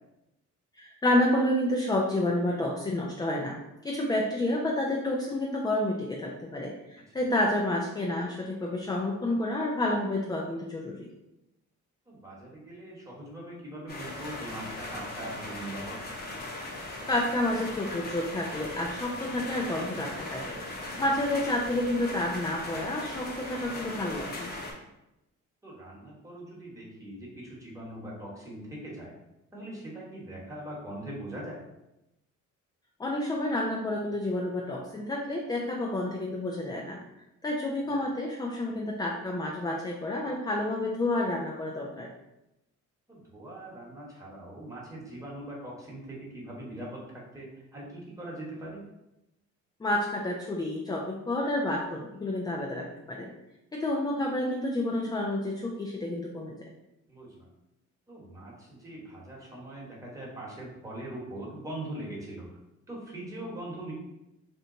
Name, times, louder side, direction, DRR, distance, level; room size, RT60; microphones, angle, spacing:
voice 1, 0.8-3.6 3.8-11.1 17.1-20.6 21.0-24.5 33.0-37.0 37.4-42.1 49.8-53.3 53.7-56.6, left 1 dB, 15° left, -1 dB, 0.4 m, -29 dB
voice 2, 12.1-16.0 20.9-21.0 25.6-29.1 29.5-31.6 37.8-38.1 43.1-47.0 47.3-48.8 57.1-57.5 58.1-62.5 62.9-63.9, right 1 dB, 10° right, -5 dB, 1.2 m, -41 dB
sound 1, 13.9-24.7, left 2 dB, 30° left, 0.8 m, -39 dB
2.9 x 2.2 x 3.7 m, 0.91 s
cardioid pair, 90°, 30 cm